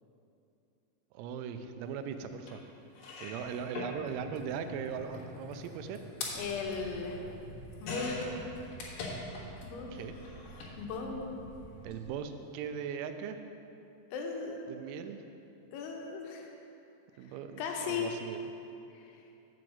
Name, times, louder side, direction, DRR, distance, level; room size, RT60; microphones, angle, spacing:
voice 1, 1.1-2.6 3.2-6.0 9.9-10.1 11.8-13.4 14.7-15.2 17.2-18.5, right 7 dB, 90° right, 8 dB, 3.3 m, -39 dB
sound 1, 2.5-2.6 2.9-9.7 9.9-10.7 11.8-11.9 12.2-12.3, left 3 dB, 65° left, 2.9 m, -43 dB
sound 2, 6.3-12.1, right 2 dB, 70° right, 3.2 m, -51 dB
voice 2, 6.4-7.3 7.8-8.3 9.6-10.1 10.8-11.4 14.1-14.8 15.7-16.5 17.6-18.1 18.9-19.0, left 5 dB, 85° left, 2 dB, 3.5 m, -37 dB
7.7 x 6.1 x 7.7 m, 2.8 s
omnidirectional pair, 6.0 m